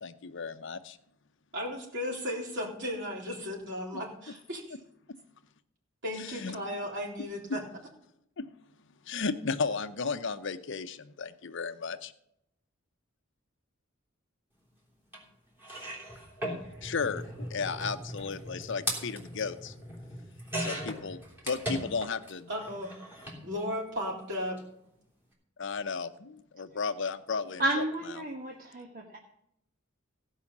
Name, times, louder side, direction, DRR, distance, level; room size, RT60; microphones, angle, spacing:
voice 1, 0.0-1.0 3.9-4.0 6.2-6.6 8.4-8.5 9.0-12.1 16.4-16.5 16.8-19.7 20.6-22.5 25.6-27.8, left 5 dB, 60° left, 10 dB, 0.7 m, -34 dB
voice 2, 1.5-4.8 6.0-7.6 22.5-22.9 23.4-24.6, left 1 dB, 60° right, -2 dB, 3.9 m, -35 dB
sound 1, 15.1-15.2 15.6-22.3 22.6-23.4 24.4-24.6 24.8-24.9, equal, 10° right, 3.3 m, -38 dB
voice 3, 27.6-29.2, right 1 dB, 45° right, 1 dB, 1.3 m, -31 dB
16.0 x 5.6 x 7.2 m, 0.77 s
head